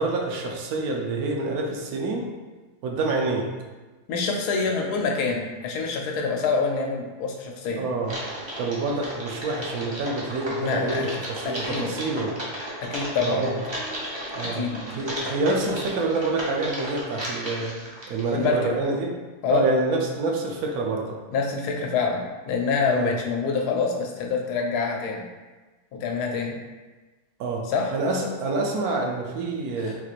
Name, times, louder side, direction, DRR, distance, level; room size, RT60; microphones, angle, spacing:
voice 1, 0.0-2.3 2.8-3.5 7.8-8.1 8.6-12.3 13.2-13.6 14.3-17.8 18.1-19.1 19.5-21.1 22.9-23.1 27.4-27.7 27.9-30.0, right 3 dB, 75° right, 1 dB, 1.0 m, -27 dB
voice 2, 4.1-7.8 10.6-11.1 11.4-11.9 12.8-13.5 14.5-14.8 18.3-18.7 19.4-19.7 21.3-25.2 25.9-26.6 27.7-27.9 29.8-29.9, left 4 dB, 85° left, 1 dB, 1.1 m, -26 dB
Typing, 8.0-18.5, equal, 45° right, 0.3 m, -34 dB
4.0 x 2.4 x 2.9 m, 1.2 s
omnidirectional pair, 1.6 m